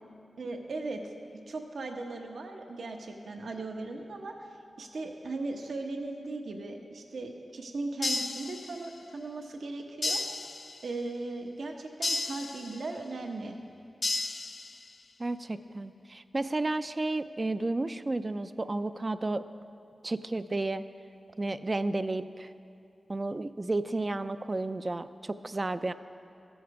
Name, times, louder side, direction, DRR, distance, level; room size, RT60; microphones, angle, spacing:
voice 1, 0.4-1.0 1.5-4.5 4.8-10.2 10.8-13.6, right 2 dB, 80° right, 3 dB, 0.9 m, -38 dB
sound 1, 8.0-9.1 10.0-11.1 12.0-13.1 14.0-15.1, left 2 dB, 50° left, 0.4 m, -34 dB
voice 2, 15.2-19.5 20.0-20.8 21.4-22.5 23.1-25.9, right 2 dB, 35° right, 12 dB, 0.3 m, -32 dB
14.5 x 7.2 x 4.7 m, 2.5 s
cardioid pair, 70°, 0 cm